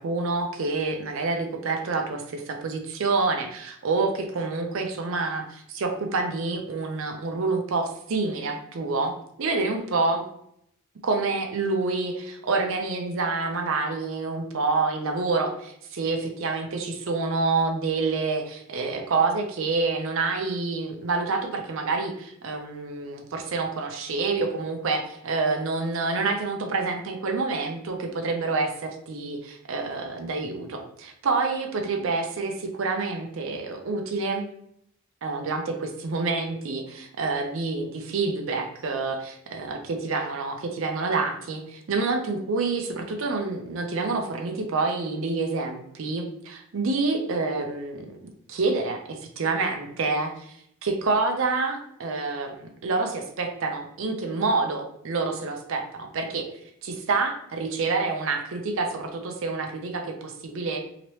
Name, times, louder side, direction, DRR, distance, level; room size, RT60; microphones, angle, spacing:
voice 1, 0.0-9.1 9.4-10.2 11.0-34.5 35.2-48.2 48.5-50.6 50.8-56.5 56.8-60.8, right 3 dB, 60° right, 4 dB, 0.5 m, -27 dB
2.9 x 2.8 x 3.0 m, 0.73 s
head